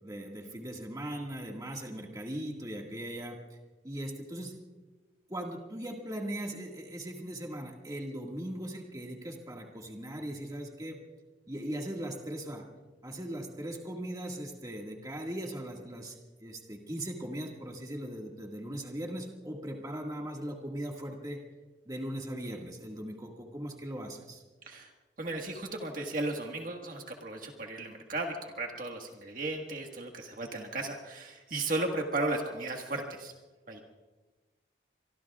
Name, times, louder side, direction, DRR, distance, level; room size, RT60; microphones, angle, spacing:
voice 1, 0.0-3.4 3.8-4.6 5.3-11.0 11.5-12.6 13.0-21.4 21.9-24.4, right 1 dB, 20° right, 0 dB, 1.9 m, -39 dB
voice 2, 25.2-33.3 33.7-33.8, right 2 dB, 45° right, 2 dB, 1.6 m, -35 dB
25.0 x 24.0 x 2.4 m, 1.2 s
head